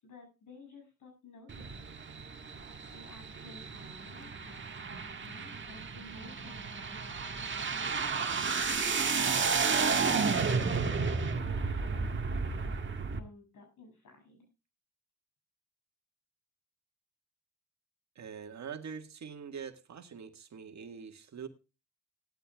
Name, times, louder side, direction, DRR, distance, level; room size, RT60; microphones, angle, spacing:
voice 1, 0.0-2.2 2.9-8.5 9.2-12.8 13.1-14.5, left 3 dB, 80° left, 4 dB, 7.3 m, -54 dB
sound 1, 1.5-13.2, right 5 dB, 40° right, 1.6 m, -32 dB
voice 2, 18.2-21.5, right 6 dB, 60° right, 6 dB, 1.8 m, -44 dB
17.5 x 12.5 x 2.3 m, 0.29 s
cardioid pair, 65°, 31 cm